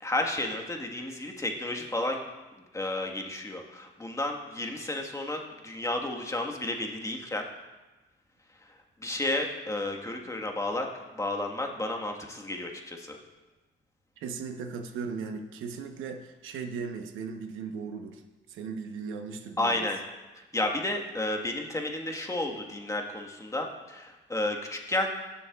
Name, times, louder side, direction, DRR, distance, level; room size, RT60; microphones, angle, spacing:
voice 1, 0.0-2.2 2.7-7.4 9.0-10.9 11.2-13.2 19.6-20.0 20.3-25.1, left 2 dB, 15° left, 2 dB, 1.4 m, -32 dB
voice 2, 14.2-18.2 18.5-19.9, right 5 dB, 85° right, 5 dB, 1.0 m, -37 dB
17.5 x 6.9 x 2.4 m, 1.1 s
cardioid pair, 90°, 20 cm